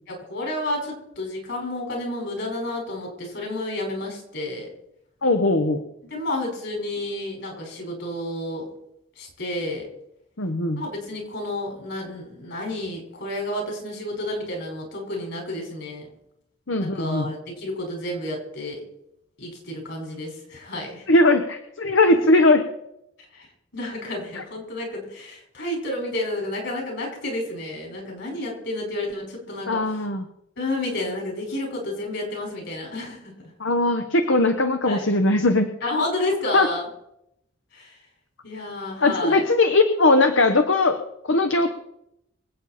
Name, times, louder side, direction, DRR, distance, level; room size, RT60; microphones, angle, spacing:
voice 1, 0.1-4.7 6.1-8.7 9.2-9.9 10.8-16.1 16.8-18.8 19.4-21.0 23.3-23.5 23.7-30.0 30.6-33.5 34.9-35.1 35.8-36.9 37.7-38.0 38.4-39.4, left 1 dB, 65° left, 1 dB, 5.2 m, -30 dB
voice 2, 5.2-5.8 10.4-10.8 16.7-17.3 21.1-22.6 29.7-30.2 33.6-35.7 36.5-36.7 39.0-40.9 41.3-41.7, left 2 dB, 85° left, 6 dB, 1.2 m, -19 dB
25.0 x 8.5 x 4.4 m, 0.80 s
head